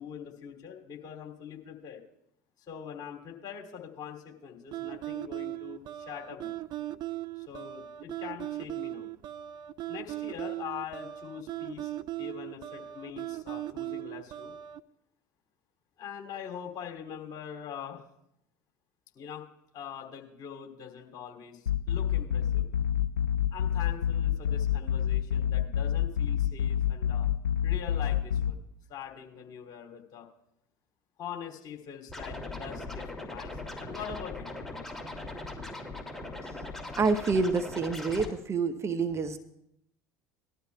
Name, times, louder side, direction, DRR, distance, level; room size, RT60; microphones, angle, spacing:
voice 1, 0.0-2.0 2.7-6.5 7.4-9.1 9.9-11.9 12.2-14.5 16.0-18.0 19.1-19.4 19.7-22.7 23.5-27.3 27.6-28.6 28.9-30.3 31.2-34.5, left 8 dB, 45° left, 1 dB, 2.7 m, -43 dB
sound 1, 4.7-14.8, right 14 dB, 50° right, 0.5 m, -38 dB
sound 2, 21.7-28.5, left 9 dB, 90° left, 0.4 m, -28 dB
Scratching (performance technique), 32.1-38.3, left 2 dB, 5° left, 2.5 m, -40 dB
voice 2, 37.0-39.4, right 4 dB, 30° right, 8 dB, 0.8 m, -27 dB
19.5 x 12.5 x 2.3 m, 0.78 s
hypercardioid pair, 70°, 10 cm